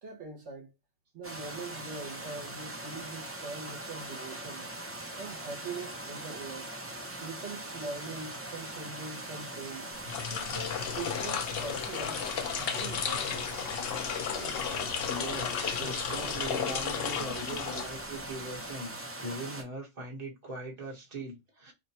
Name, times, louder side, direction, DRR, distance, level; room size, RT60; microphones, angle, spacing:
voice 1, 0.0-0.7 1.1-4.7 5.2-6.7 7.2-9.9 10.3-12.2 12.5-13.5 14.3-14.6, right 4 dB, 70° right, 1.1 m, -42 dB
sound 1, 1.2-19.6, right 1 dB, 15° right, 0.5 m, -41 dB
sound 2, 10.0-18.4, left 7 dB, 60° left, 0.7 m, -34 dB
voice 2, 15.1-21.7, right 2 dB, 35° right, 1.1 m, -40 dB
2.9 x 2.2 x 4.0 m
omnidirectional pair, 1.3 m